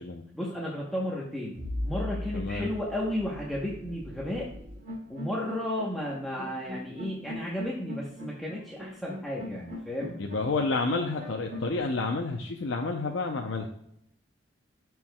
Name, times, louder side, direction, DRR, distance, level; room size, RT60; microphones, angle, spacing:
voice 1, 0.3-4.5 5.1-10.2, left 1 dB, ahead, -5 dB, 0.9 m, -33 dB
sound 1, 1.5-11.8, left 1 dB, 55° right, 2.2 m, -39 dB
voice 2, 2.3-2.7 10.2-13.7, left 3 dB, 85° left, 2 dB, 0.6 m, -30 dB
13.0 x 4.6 x 2.3 m, 0.75 s
head